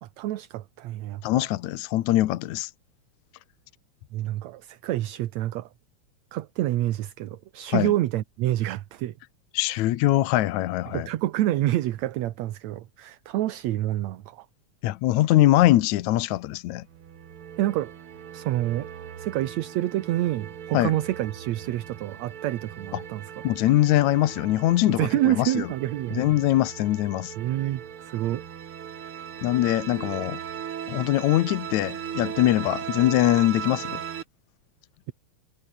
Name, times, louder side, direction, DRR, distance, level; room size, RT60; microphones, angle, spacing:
voice 1, 0.0-1.5 4.1-5.7 6.3-9.1 10.9-14.5 17.6-17.9 18.3-18.9 19.2-23.2 25.0-26.2 27.4-28.4, right 14 dB, 75° right, 2.2 m, -28 dB
voice 2, 1.2-2.7 7.7-7.9 9.5-11.1 14.8-16.9 20.7-20.9 22.9-23.0 23.4-25.7 26.1-27.3 29.4-30.4 30.9-34.0, left 15 dB, 80° left, 2.3 m, -22 dB
sound 1, 16.9-34.2, right 9 dB, 55° right, 2.2 m, -38 dB
omnidirectional pair, 3.3 m